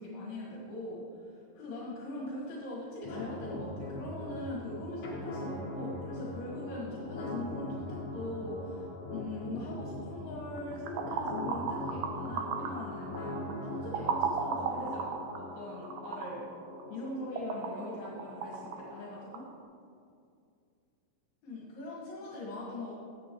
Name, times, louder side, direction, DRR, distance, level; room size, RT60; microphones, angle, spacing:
voice 1, 0.0-13.3 13.6-16.5 16.9-19.5 21.4-22.9, left 1 dB, 75° left, -6 dB, 3.5 m, -41 dB
sound 1, 3.0-19.0, left 1 dB, 50° left, 1.7 m, -41 dB
sound 2, 10.6-19.5, right 5 dB, 75° right, 2.6 m, -37 dB
18.0 x 7.5 x 3.1 m, 2.4 s
omnidirectional pair, 4.7 m